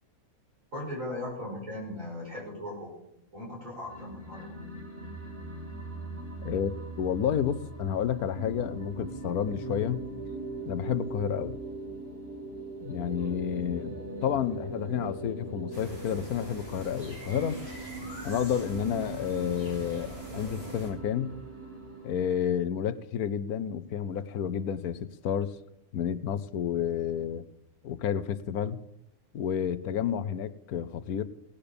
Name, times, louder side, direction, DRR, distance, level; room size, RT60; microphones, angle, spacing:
voice 1, 0.7-2.9 3.3-4.6 13.2-13.3, left 1 dB, 60° right, -3 dB, 6.1 m, -38 dB
sound 1, 3.8-22.4, right 2 dB, 10° right, 5.4 m, -40 dB
voice 2, 7.0-10.0 10.7-11.6 12.8-17.6 18.2-21.4 22.0-25.6 25.9-27.4 27.8-28.8 29.3-31.2, left 9 dB, 85° left, 13 dB, 1.3 m, -30 dB
sound 2, 15.7-20.9, right 1 dB, 45° right, 6.6 m, -45 dB
18.0 x 10.0 x 6.9 m, 0.80 s
omnidirectional pair, 1.5 m